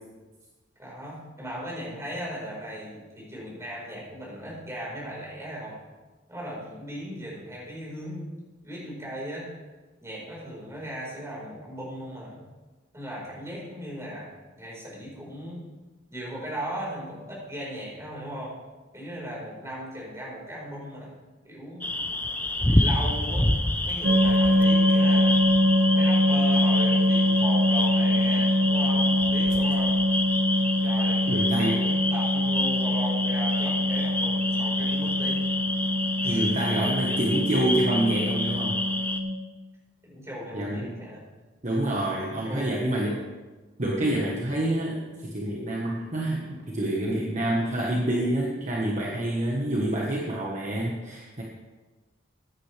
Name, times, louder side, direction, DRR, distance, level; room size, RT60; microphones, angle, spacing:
voice 1, 0.8-5.8 6.3-8.3 8.6-9.5 10.0-12.4 12.9-14.3 14.6-15.7 16.1-18.5 18.9-21.1 21.4-21.9 22.6-23.5 23.8-25.4 25.9-30.0 30.8-35.4 36.2-36.4 36.7-37.4 40.0-41.2 42.2-42.8, equal, 15° right, -5 dB, 4.5 m, -37 dB
sound 1, 21.8-39.2, left 1 dB, 10° left, 0.6 m, -28 dB
sound 2, 24.0-39.3, left 1 dB, 75° right, 1.4 m, -24 dB
voice 2, 31.3-31.8 36.2-38.8 40.5-41.0 41.6-43.3 43.8-51.4, right 1 dB, 40° right, -3 dB, 1.3 m, -27 dB
15.5 x 9.7 x 3.4 m, 1.2 s
head